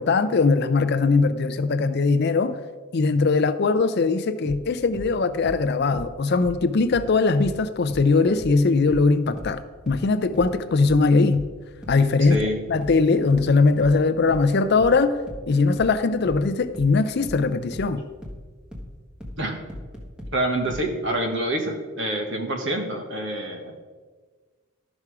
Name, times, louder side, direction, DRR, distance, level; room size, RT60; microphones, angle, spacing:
voice 1, 0.0-2.6 2.9-11.4 11.9-12.4 12.7-15.2 15.5-18.0, left 4 dB, 50° left, 0.4 m, -20 dB
sound 1, 4.4-7.6 7.9-20.9, left 1 dB, 5° right, 1.2 m, -38 dB
voice 2, 20.3-23.7, right 1 dB, 55° right, 1.4 m, -26 dB
12.0 x 6.1 x 4.8 m
head